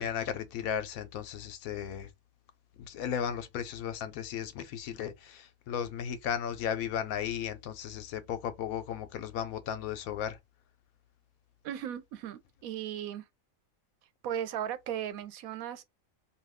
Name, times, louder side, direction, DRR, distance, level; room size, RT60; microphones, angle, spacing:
voice 1, 0.0-2.1 2.8-10.4, left 8 dB, 90° left, 1.1 m, -35 dB
voice 2, 11.6-13.3 14.2-15.8, right 10 dB, 90° right, 1.0 m, -36 dB
2.6 x 2.3 x 3.4 m
omnidirectional pair, 1.4 m